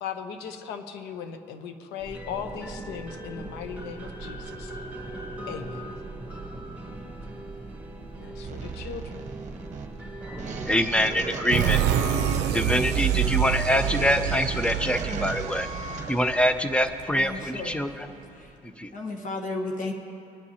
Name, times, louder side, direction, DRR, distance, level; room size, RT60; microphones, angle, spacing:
voice 1, 0.0-4.7 5.5-5.9 8.2-9.2, left 7 dB, 85° left, 8 dB, 0.9 m, -38 dB
sound 1, 2.0-18.5, right 1 dB, 10° right, 1.8 m, -40 dB
sound 2, 8.4-16.4, right 4 dB, 45° right, 0.9 m, -37 dB
voice 2, 10.7-11.8 12.5-15.7 16.1-18.1 18.8-18.9, equal, 5° left, 9 dB, 0.6 m, -25 dB
sound 3, 11.5-17.0, right 10 dB, 80° right, 0.5 m, -27 dB
voice 3, 17.1-17.7 18.3-18.6 18.9-19.9, left 2 dB, 50° left, 2 dB, 1.2 m, -33 dB
21.0 x 9.5 x 2.8 m, 2.8 s
cardioid pair, 110°, 17 cm